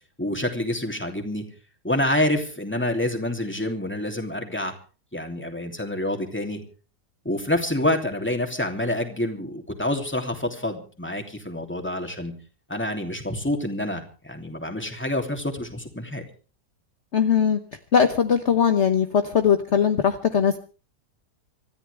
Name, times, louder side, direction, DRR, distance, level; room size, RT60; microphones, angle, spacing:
voice 1, 0.2-1.4 1.8-4.7 5.1-6.6 7.2-12.3 12.7-16.2, left 1 dB, 5° left, 4 dB, 2.9 m, -27 dB
voice 2, 17.1-17.6 17.9-20.6, left 7 dB, 50° left, 7 dB, 1.3 m, -20 dB
26.0 x 14.0 x 3.4 m, 0.37 s
omnidirectional pair, 1.7 m